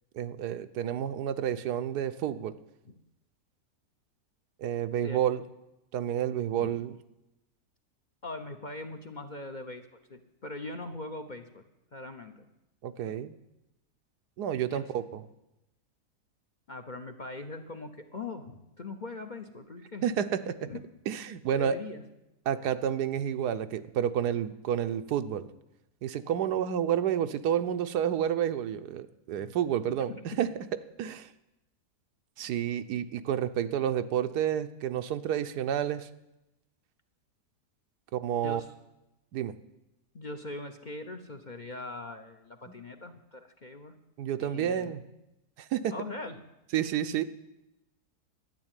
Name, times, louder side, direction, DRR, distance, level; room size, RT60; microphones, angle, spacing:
voice 1, 0.1-2.5 4.6-5.4 5.9-7.0 12.8-13.4 14.4-15.2 20.0-20.7 21.1-21.8 22.5-25.5 26.0-30.5 31.0-31.3 32.4-36.1 38.1-38.6 39.3-39.5 42.7-42.8 44.2-45.0 45.6-45.9 46.7-47.2, right 9 dB, 80° right, 11 dB, 1.3 m, -30 dB
voice 2, 8.2-11.6 11.9-12.5 13.0-13.1 14.7-14.9 16.7-20.1 20.7-20.8 21.5-22.0 29.3-29.5 30.1-30.5 38.4-38.7 40.1-43.9 44.4-45.0 45.9-46.4, left 2 dB, 40° left, 6 dB, 0.8 m, -41 dB
12.0 x 10.0 x 8.9 m, 0.91 s
omnidirectional pair, 1.7 m